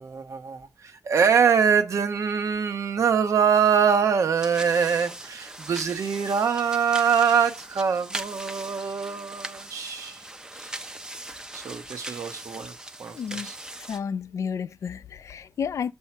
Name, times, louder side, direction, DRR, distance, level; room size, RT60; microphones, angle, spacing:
voice 1, 0.0-10.2 10.6-10.8 11.5-13.6, right 7 dB, 80° right, 1.1 m, -24 dB
sound 1, 4.4-14.0, right 1 dB, 15° right, 0.6 m, -40 dB
voice 2, 13.1-13.5 13.9-15.9, left 7 dB, 75° left, 0.3 m, -31 dB
7.3 x 5.5 x 4.5 m
wide cardioid pair, 105°, 5 cm